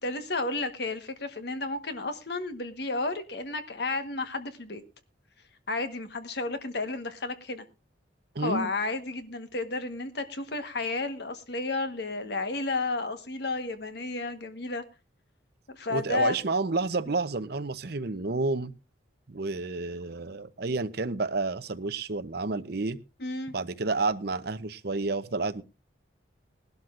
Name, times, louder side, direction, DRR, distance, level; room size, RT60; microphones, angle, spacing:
voice 1, 0.0-4.8 5.7-7.6 8.4-14.8 15.7-16.4 23.2-23.5, left 3 dB, 55° left, 1.3 m, -32 dB
voice 2, 8.3-8.7 15.9-18.7 19.3-23.0 23.5-25.6, right 3 dB, 55° right, 0.7 m, -30 dB
20.0 x 12.0 x 2.5 m
head